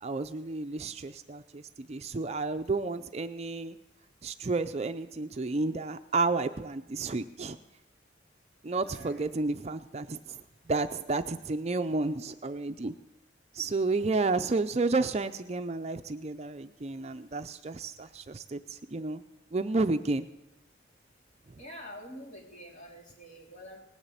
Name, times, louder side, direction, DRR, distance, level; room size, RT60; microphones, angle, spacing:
voice 1, 0.0-3.8 4.2-7.6 8.6-10.4 10.7-12.9 13.5-19.2 19.5-20.3, right 3 dB, 35° right, 9 dB, 0.5 m, -31 dB
voice 2, 8.8-9.3 17.3-17.4 17.7-17.8 21.6-23.8, equal, 40° left, -2 dB, 3.6 m, -47 dB
18.5 x 7.3 x 8.2 m, 0.90 s
head